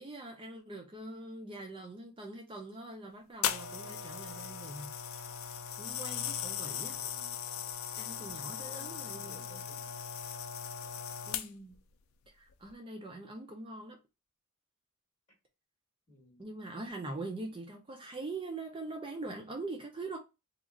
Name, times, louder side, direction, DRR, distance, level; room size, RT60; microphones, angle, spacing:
voice 1, 0.0-4.9 5.8-7.0 7.9-9.6 11.3-11.8 12.4-14.0 16.4-20.2, right 2 dB, 25° right, 0.5 m, -43 dB
sound 1, 3.4-11.8 12.5-12.7, left 9 dB, 70° left, 0.4 m, -38 dB
voice 2, 6.9-7.4 8.5-9.9 16.1-16.4, left 2 dB, 30° left, 1.4 m, -58 dB
3.0 x 2.4 x 3.7 m
head